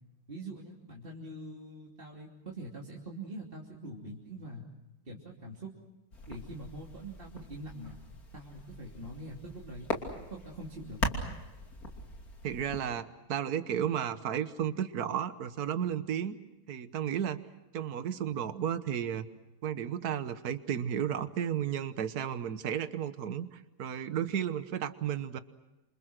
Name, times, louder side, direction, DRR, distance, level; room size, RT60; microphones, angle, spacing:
voice 1, 0.3-4.6 5.0-5.7 6.3-8.0 8.3-9.9 10.3-11.2, right 1 dB, 25° right, -3 dB, 3.2 m, -44 dB
sound 1, 6.1-12.8, left 1 dB, 40° left, 3.3 m, -40 dB
voice 2, 12.4-16.4 16.7-17.4 17.7-19.3 19.6-25.4, right 9 dB, 50° right, 11 dB, 1.5 m, -33 dB
28.0 x 27.5 x 6.1 m, 0.99 s
omnidirectional pair, 2.3 m